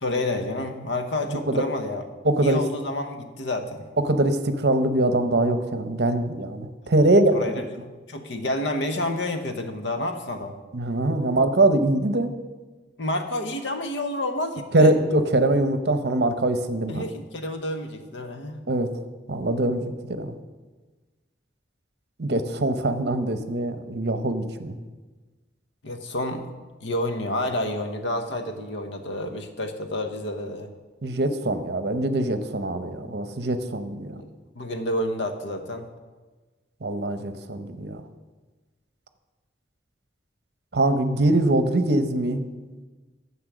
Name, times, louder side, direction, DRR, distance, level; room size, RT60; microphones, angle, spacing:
voice 1, 0.0-2.0 2.4-3.9 7.3-7.6 8.1-10.5 13.0-14.9 16.9-18.6 25.8-26.5 26.8-30.7 34.1-34.3 34.6-35.9, left 1 dB, 80° left, 7 dB, 1.0 m, -29 dB
voice 2, 2.2-2.6 4.1-7.4 10.7-12.3 14.7-17.0 18.7-18.9 19.3-20.3 22.2-24.7 31.0-34.2 36.8-38.0 40.7-42.4, right 2 dB, 65° right, 9 dB, 0.8 m, -23 dB
10.0 x 7.2 x 6.1 m, 1.3 s
head